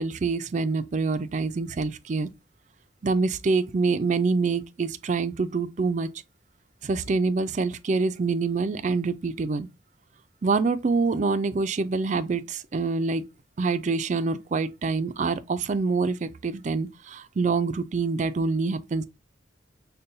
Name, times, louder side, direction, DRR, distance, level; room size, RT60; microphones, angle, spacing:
voice 1, 0.0-2.3 3.0-6.1 6.8-9.7 10.4-13.2 13.6-19.0, right 4 dB, 40° right, 0.3 m, -26 dB
5.3 x 2.2 x 2.6 m
head